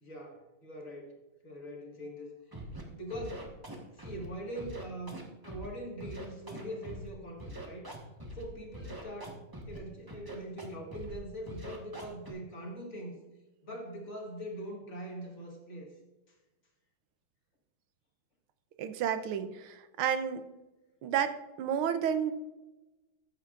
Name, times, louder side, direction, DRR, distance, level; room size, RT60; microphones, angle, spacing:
voice 1, 0.0-2.3 2.9-3.5 3.9-7.9 8.3-9.4 9.7-13.2 13.6-15.9, equal, 40° left, 0 dB, 2.1 m, -42 dB
Scratching (performance technique), 2.5-2.8 3.1-4.2 4.5-5.7 6.0-7.1 7.4-8.4 8.7-9.8 10.1-10.7 10.9-11.2 11.5-12.3, right 1 dB, 15° right, 1.1 m, -43 dB
voice 2, 18.8-20.4 21.0-22.3, right 8 dB, 80° right, 9 dB, 1.6 m, -31 dB
14.0 x 9.1 x 2.5 m, 1.1 s
omnidirectional pair, 2.3 m